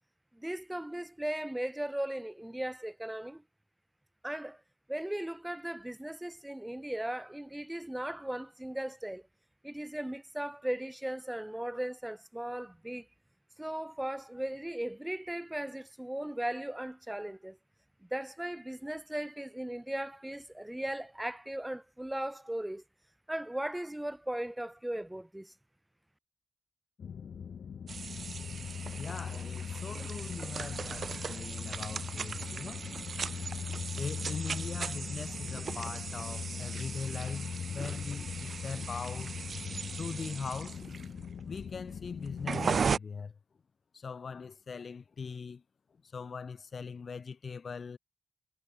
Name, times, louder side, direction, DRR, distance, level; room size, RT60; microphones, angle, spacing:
voice 1, 0.3-3.4 4.2-4.6 4.9-9.2 9.6-13.1 13.6-17.6 18.1-22.8 23.3-25.5, right 1 dB, 10° right, 0.5 m, -37 dB
sound 1, 27.0-42.8, left 7 dB, 85° left, 0.6 m, -40 dB
sound 2, 27.9-43.0, right 5 dB, 60° right, 0.3 m, -38 dB
voice 2, 29.0-32.9 34.0-39.3 40.0-40.8 41.5-43.3 43.9-45.6 46.1-48.0, left 5 dB, 55° left, 0.8 m, -41 dB
wide cardioid pair, 125°, 0 cm